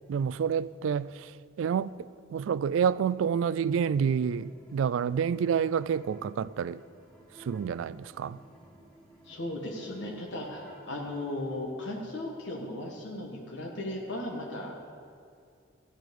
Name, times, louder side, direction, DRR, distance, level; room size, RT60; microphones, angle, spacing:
voice 1, 0.1-1.3 1.6-1.9 2.3-6.8 7.5-8.4, right 7 dB, 75° right, 0.3 m, -28 dB
sound 1, 3.7-11.6, right 1 dB, 5° left, 2.1 m, -55 dB
voice 2, 9.2-14.7, left 1 dB, 65° left, 1.6 m, -36 dB
14.0 x 9.2 x 5.3 m
head